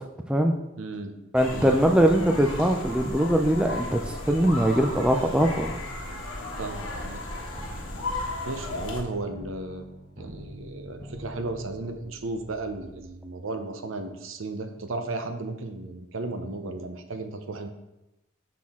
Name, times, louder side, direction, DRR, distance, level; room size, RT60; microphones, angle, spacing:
voice 1, 0.8-1.1 1.5-1.8 6.6-7.2 8.4-9.9 10.2-17.7, right 2 dB, 65° right, 7 dB, 0.7 m, -34 dB
voice 2, 1.3-4.0 4.3-5.7, equal, 5° right, 3 dB, 0.3 m, -21 dB
sound 1, 1.4-9.0, left 2 dB, 65° left, 1.3 m, -34 dB
sound 2, 7.6-13.1, equal, 40° right, 2.4 m, -46 dB
6.0 x 5.9 x 3.6 m, 0.96 s
head